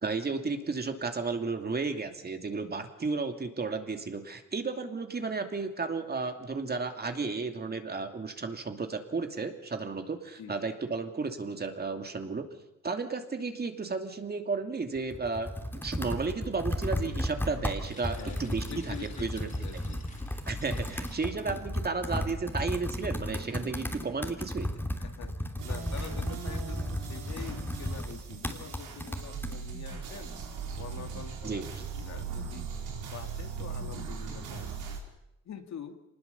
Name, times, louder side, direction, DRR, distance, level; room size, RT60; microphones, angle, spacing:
voice 1, 0.0-12.4 12.8-19.5 20.5-24.7 31.4-31.7, right 4 dB, 30° right, 6 dB, 2.6 m, -33 dB
Computer keyboard, 15.0-29.6, left 1 dB, 5° left, 3.1 m, -34 dB
sound 1, 17.8-22.2, left 3 dB, 25° left, 4.6 m, -54 dB
voice 2, 18.1-20.3 21.3-21.6 25.0-30.4 30.8-32.7 33.0-35.0 35.4-36.0, left 8 dB, 65° left, 6 dB, 2.6 m, -46 dB
sound 2, 25.6-35.0, right 6 dB, 90° right, 4.2 m, -39 dB
24.5 x 20.0 x 7.1 m, 0.92 s
cardioid pair, 90°, 30 cm